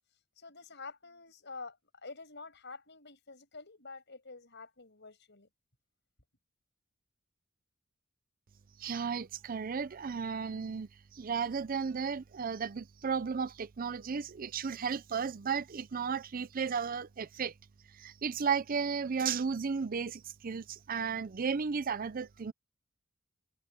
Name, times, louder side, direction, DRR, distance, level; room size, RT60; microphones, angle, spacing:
voice 1, 0.4-5.5, left 4 dB, 60° left, 7.3 m, -48 dB
voice 2, 8.8-17.5 17.9-22.5, right 6 dB, 45° right, 0.5 m, -34 dB
head